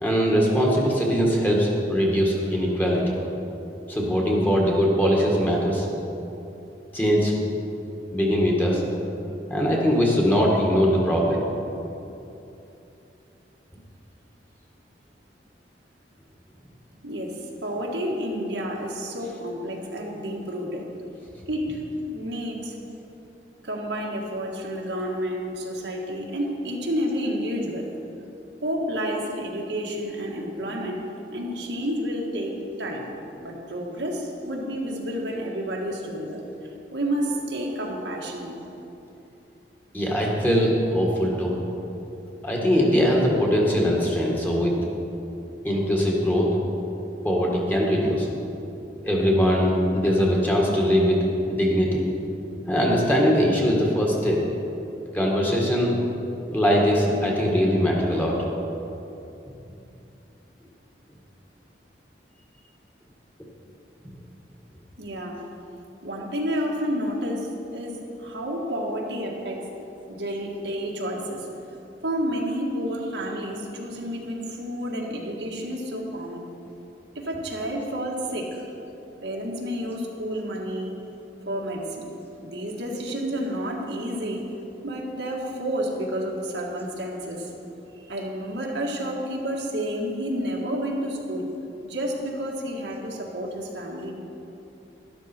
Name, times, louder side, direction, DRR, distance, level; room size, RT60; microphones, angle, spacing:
voice 1, 0.0-3.2 3.9-5.9 6.9-7.4 8.1-8.8 9.5-11.4 39.9-41.6 42.4-44.8 45.6-46.5 47.2-48.3 49.0-52.0 52.7-54.4 55.1-56.0 56.5-58.4, equal, 10° left, -2 dB, 1.8 m, -21 dB
voice 2, 17.0-20.9 21.5-21.8 22.1-22.8 23.6-27.9 28.6-31.0 31.3-32.5 32.8-33.1 33.4-36.4 36.9-38.6 65.0-65.4 66.0-69.7 70.1-71.5 72.0-76.4 77.2-78.6 79.2-80.9 81.5-82.1 82.4-84.4 84.8-87.5 87.9-91.5 91.8-94.1, equal, 85° right, -1 dB, 1.8 m, -30 dB
12.0 x 11.5 x 4.5 m, 2.8 s
head